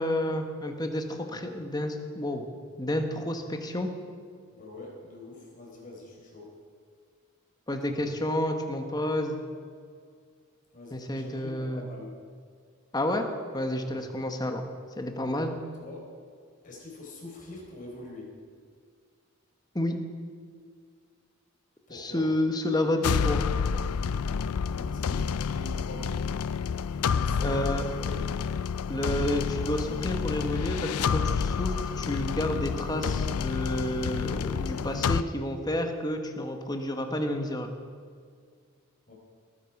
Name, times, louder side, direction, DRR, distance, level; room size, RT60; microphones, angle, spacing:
voice 1, 0.0-2.5 2.8-3.9 7.7-9.4 10.9-11.9 12.9-13.3 13.5-14.6 15.0-15.6 19.7-20.0 21.9-23.4 27.4-27.8 28.9-37.7, left 1 dB, 20° left, 5 dB, 1.2 m, -30 dB
voice 2, 4.5-6.5 7.8-8.1 10.7-12.2 13.9-14.0 15.4-15.5 15.8-16.1 16.6-18.3 21.9-22.3 23.5-23.7 24.7-26.2 26.6-28.2 39.1-39.2, left 2 dB, 35° left, -2 dB, 4.4 m, -44 dB
sound 1, 23.0-35.2, left 6 dB, 90° left, 0.5 m, -29 dB
19.5 x 9.6 x 6.0 m, 2.1 s
head